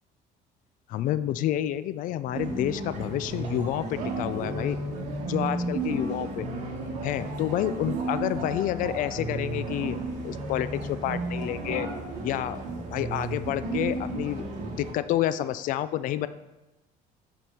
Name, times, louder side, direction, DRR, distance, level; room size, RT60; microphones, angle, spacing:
voice 1, 0.9-4.8 5.3-6.5 7.0-11.9 12.2-12.6 12.9-14.4 14.8-16.3, left 12 dB, 55° left, 14 dB, 0.4 m, -29 dB
Downtown walk during bluesfest, 2.3-14.9, right 2 dB, 50° right, 2.0 m, -33 dB
7.4 x 5.2 x 5.5 m, 1.0 s
cardioid pair, 145°, 16 cm